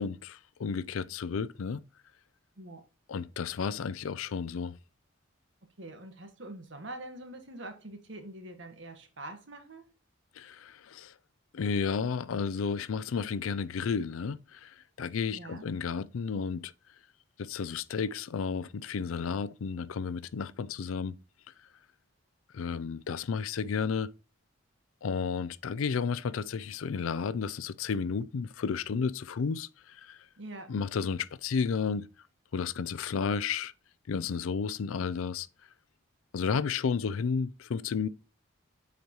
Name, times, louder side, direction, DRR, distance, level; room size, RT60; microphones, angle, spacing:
voice 1, 0.0-1.8 3.1-4.8 10.4-11.1 11.5-16.7 17.4-21.2 22.5-24.1 25.0-30.3 30.7-32.1 32.5-33.7 34.1-35.5 36.3-38.1, left 6 dB, 90° left, 0.4 m, -32 dB
voice 2, 5.8-9.9 15.3-15.7 30.4-30.7, right 1 dB, 65° right, 1.4 m, -44 dB
8.0 x 5.1 x 3.0 m
head